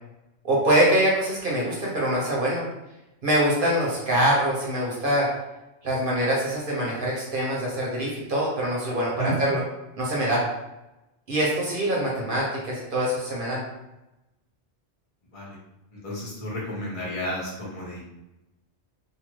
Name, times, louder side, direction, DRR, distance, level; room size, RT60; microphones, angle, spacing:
voice 1, 0.4-2.7 3.2-5.3 5.8-9.6 10.0-10.4 11.3-13.6, right 1 dB, 55° right, -4 dB, 1.0 m, -24 dB
voice 2, 15.9-18.0, equal, 30° left, -5 dB, 0.9 m, -32 dB
2.6 x 2.6 x 3.1 m, 0.96 s
omnidirectional pair, 1.2 m